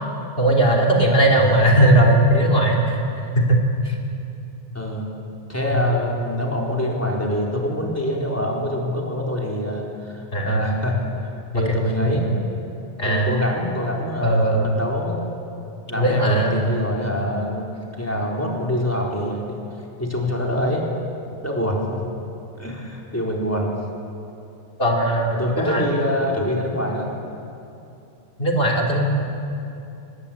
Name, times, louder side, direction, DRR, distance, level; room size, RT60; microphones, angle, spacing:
voice 1, 0.4-3.0 3.4-3.6 3.9-4.0 5.7-5.8 10.3-10.6 11.5-11.8 13.0-13.3 14.2-14.8 16.0-16.6 24.8-25.9 28.4-29.1, right 1 dB, 55° left, 0 dB, 3.6 m, -18 dB
voice 2, 1.3-1.8 4.7-5.0 5.5-12.3 13.0-15.2 15.8-17.7 18.0-19.5 20.0-20.8 21.4-22.0 22.6-23.7 25.3-27.1, equal, 10° left, -2 dB, 4.2 m, -25 dB
25.0 x 20.5 x 8.7 m, 2.7 s
omnidirectional pair, 1.2 m